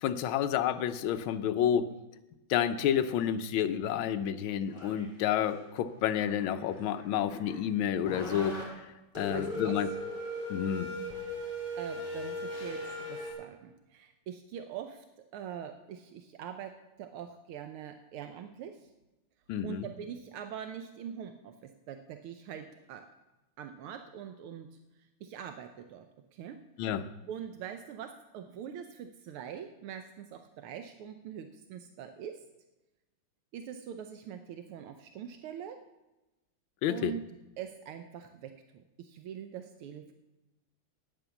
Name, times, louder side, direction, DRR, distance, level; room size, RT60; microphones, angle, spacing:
voice 1, 0.0-1.9 2.5-8.5 9.2-9.9 10.5-10.9 19.5-19.8 26.8-27.0 36.8-37.1, left 9 dB, 75° left, 8 dB, 1.4 m, -29 dB
sound 1, 4.7-5.1 5.5-5.7 6.1-7.6 8.0-8.6 9.2-13.3, equal, 20° left, 3.7 m, -38 dB
voice 2, 9.3-9.8 11.8-15.0 15.3-18.9 19.6-23.1 23.6-24.8 25.2-26.1 26.3-26.6 27.3-32.4 33.5-35.8 36.9-37.3 37.6-40.1, right 8 dB, 85° right, 7 dB, 1.6 m, -43 dB
9.3 x 8.9 x 7.0 m, 1.0 s
omnidirectional pair, 2.4 m